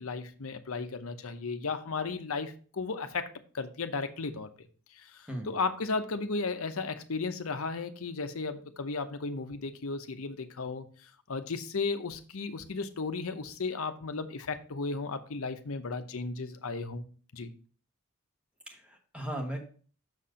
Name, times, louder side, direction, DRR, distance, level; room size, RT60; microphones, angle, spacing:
voice 1, 0.0-4.5 4.9-17.0 17.3-17.5, left 4 dB, 70° left, 0.8 m, -35 dB
voice 2, 18.7-19.6, right 1 dB, 5° right, 1.1 m, -37 dB
6.6 x 4.3 x 5.0 m
head